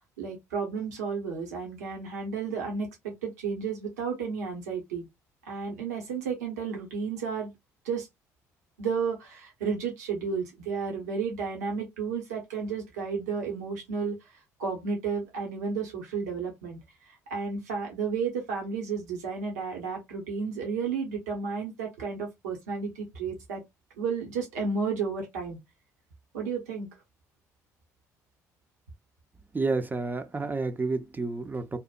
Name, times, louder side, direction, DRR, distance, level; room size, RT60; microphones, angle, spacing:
voice 1, 0.2-5.1 5.5-7.5 7.8-8.1 8.8-14.3 14.6-16.8 17.3-23.6 24.0-25.6 26.3-26.9, right 5 dB, 80° right, 0.8 m, -32 dB
voice 2, 29.5-31.8, right 3 dB, 20° right, 0.5 m, -30 dB
2.8 x 2.1 x 2.4 m
figure-of-eight pair, 50°, 9 cm